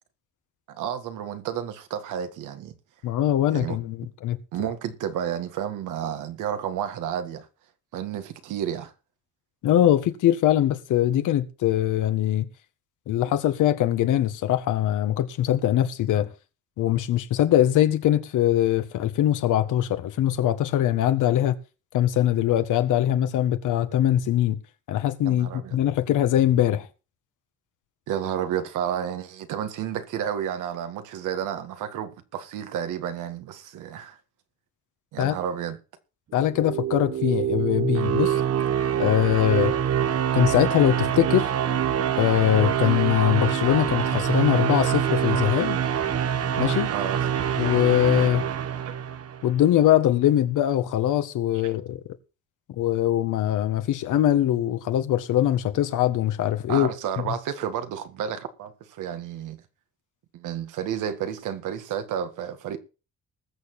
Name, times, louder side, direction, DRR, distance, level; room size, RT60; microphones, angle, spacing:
voice 1, 0.7-2.7 3.5-3.8 4.5-7.5 7.9-8.9 25.2-25.8 28.1-34.2 35.1-35.8 46.9-47.2 48.9-49.0 56.7-59.6 60.3-62.8, right 9 dB, 90° right, 1.9 m, -31 dB
voice 2, 3.0-4.4 9.6-12.5 13.1-16.3 16.8-21.6 21.9-24.6 24.9-26.9 35.2-35.4 36.3-38.4 39.0-39.7 40.3-41.5 42.2-45.8 46.6-46.9 47.6-48.4 49.4-52.0 52.8-56.9, left 12 dB, 85° left, 1.6 m, -22 dB
sound 1, 36.4-49.5, right 9 dB, 55° right, 1.3 m, -25 dB
20.0 x 7.1 x 4.4 m
cardioid pair, 90°, 30 cm